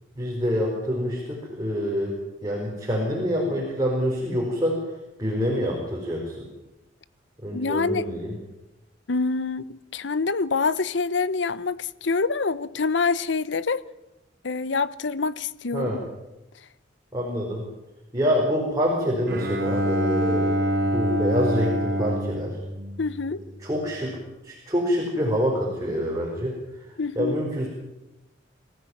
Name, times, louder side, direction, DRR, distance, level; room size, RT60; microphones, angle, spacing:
voice 1, 0.2-4.8 5.2-6.5 7.4-8.3 15.7-16.0 17.1-17.6 18.1-20.5 20.9-22.6 23.6-24.2 24.4-26.6 27.1-27.7, equal, 20° right, 4.7 m, -26 dB
voice 2, 7.5-8.1 9.1-13.8 14.4-15.9 23.0-23.4 27.0-27.4, left 4 dB, 75° left, 0.8 m, -26 dB
Bowed string instrument, 19.3-23.6, equal, 55° right, 2.8 m, -26 dB
23.5 x 15.0 x 9.5 m
head